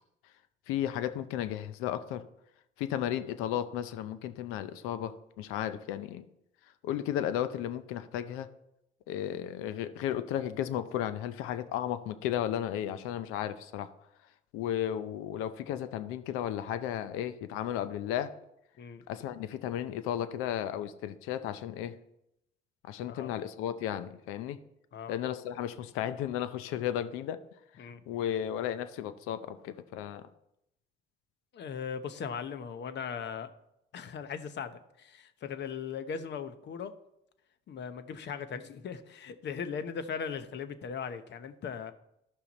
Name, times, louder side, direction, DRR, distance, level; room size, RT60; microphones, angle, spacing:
voice 1, 0.7-2.2 2.8-6.3 6.8-8.5 9.1-13.9 14.5-18.3 19.1-22.0 22.9-24.6 25.1-27.4 27.8-30.2, left 11 dB, 90° left, 12 dB, 0.6 m, -34 dB
voice 2, 31.5-33.5 33.9-36.9 37.7-41.9, left 6 dB, 55° left, 11 dB, 0.9 m, -38 dB
13.0 x 5.7 x 4.1 m, 0.81 s
supercardioid pair, 80°, 21 cm